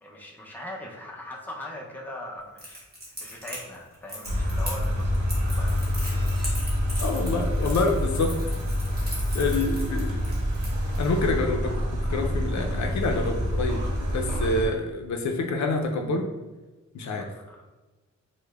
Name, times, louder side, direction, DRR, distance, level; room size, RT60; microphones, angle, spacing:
voice 1, 0.0-2.9 3.2-6.7 9.1-9.2 17.0-17.8, left 1 dB, 5° left, -2 dB, 0.5 m, -41 dB
Crackle, 2.6-11.0, equal, 30° right, 1.1 m, -39 dB
sound 1, 4.2-14.7, equal, 85° right, 0.7 m, -27 dB
voice 2, 7.0-8.3 9.0-10.2 11.0-11.8 12.1-13.8 14.1-16.3 16.9-17.2, left 3 dB, 70° left, 3 dB, 0.5 m, -27 dB
4.9 x 2.1 x 2.3 m, 1.2 s
wide cardioid pair, 130°, 29 cm